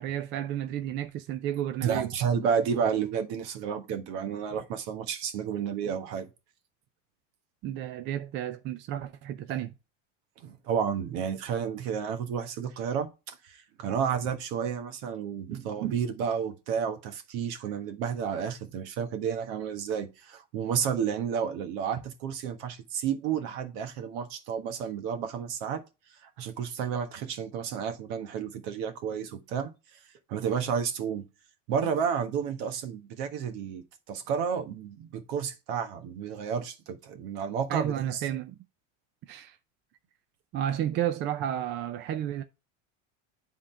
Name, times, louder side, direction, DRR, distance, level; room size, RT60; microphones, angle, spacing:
voice 1, 0.0-2.1 7.6-9.7 37.7-38.6 39.3-39.6 40.5-42.4, right 11 dB, 30° right, 0.5 m, -32 dB
voice 2, 1.8-6.3 10.4-25.8 26.2-30.0 30.3-31.2 31.7-38.2, right 7 dB, 55° right, 1.4 m, -31 dB
9.7 x 3.8 x 4.3 m
supercardioid pair, 150°, 37 cm